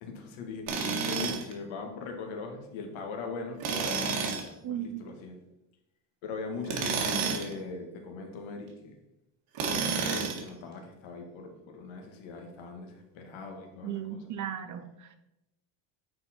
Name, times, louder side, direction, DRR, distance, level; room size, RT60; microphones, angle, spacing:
voice 1, 0.0-4.3 4.7-5.4 6.2-9.0 9.7-14.2, left 4 dB, 70° left, 3 dB, 1.7 m, -40 dB
Tools, 0.7-1.5 3.6-4.5 6.6-7.5 9.6-10.5, right 5 dB, 80° right, 1.8 m, -30 dB
voice 2, 4.6-5.0 13.8-15.2, right 10 dB, 40° right, 8 dB, 0.5 m, -36 dB
8.8 x 4.4 x 4.3 m, 0.89 s
cardioid pair, 180°, 49 cm